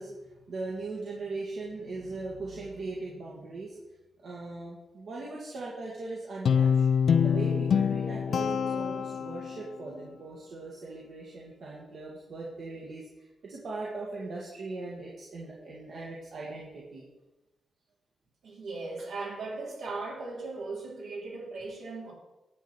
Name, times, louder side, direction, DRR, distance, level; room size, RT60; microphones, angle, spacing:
voice 1, 0.0-3.8 4.2-6.9 7.2-17.0, right 3 dB, 65° right, -4 dB, 1.8 m, -39 dB
Guitar, 6.5-9.7, left 7 dB, 70° left, 0.5 m, -25 dB
voice 2, 18.4-22.1, right 3 dB, 80° right, -4 dB, 3.5 m, -38 dB
9.7 x 8.0 x 4.5 m, 1.1 s
cardioid pair, 115°, 0 cm